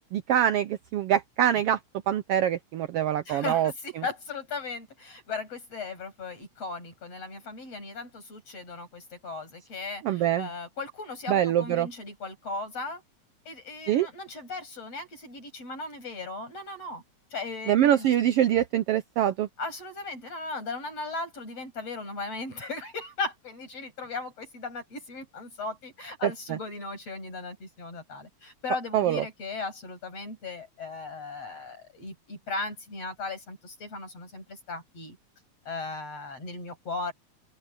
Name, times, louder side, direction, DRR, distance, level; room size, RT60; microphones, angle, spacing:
voice 1, 0.1-1.8 2.1-3.7 10.0-10.5 11.3-11.9 13.9-14.1 17.7-19.5 26.2-26.3 28.9-29.2, right 11 dB, 75° right, 1.4 m, -24 dB
voice 2, 3.3-13.0 13.5-17.0 17.3-18.1 19.6-35.2 35.7-37.1, left 3 dB, 55° left, 9.3 m, -37 dB
open air
omnidirectional pair, 3.3 m